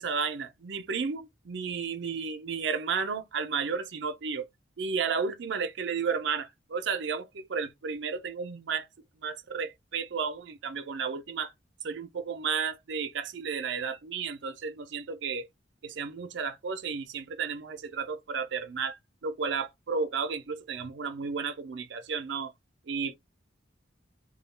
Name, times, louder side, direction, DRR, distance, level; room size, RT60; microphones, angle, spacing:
voice 1, 0.0-4.5 4.8-8.9 9.2-11.5 11.8-15.5 15.8-22.5 22.9-23.1, right 5 dB, 70° right, 0.5 m, -33 dB
2.3 x 2.2 x 3.1 m
head